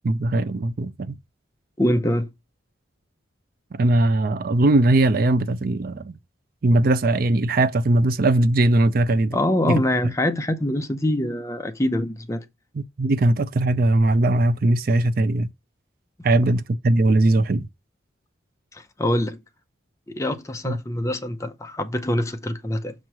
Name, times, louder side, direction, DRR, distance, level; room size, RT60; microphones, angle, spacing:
voice 1, 0.0-1.2 3.7-6.1 6.6-9.4 9.7-10.1 12.8-15.5 16.2-17.7 20.6-20.8, right 2 dB, 50° right, 0.4 m, -20 dB
voice 2, 1.8-2.3 9.3-12.4 18.7-19.4 20.1-22.9, left 1 dB, 15° left, 0.6 m, -24 dB
6.5 x 3.1 x 5.9 m
head